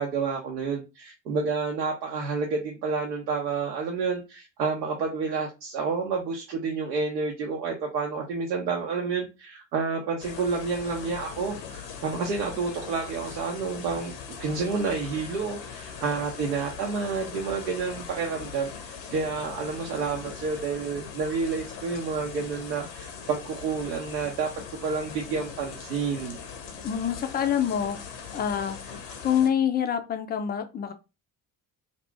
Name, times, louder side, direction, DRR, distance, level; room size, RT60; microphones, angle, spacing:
voice 1, 0.0-24.5 24.8-26.4, right 4 dB, 75° right, 0 dB, 0.7 m, -29 dB
sound 1, 10.2-29.5, left 6 dB, 75° left, 0.7 m, -41 dB
voice 2, 26.8-28.0 28.3-28.8 29.2-30.9, left 8 dB, 20° left, 7 dB, 0.3 m, -26 dB
2.8 x 2.5 x 3.3 m, 0.28 s
figure-of-eight pair, 50°, 50 cm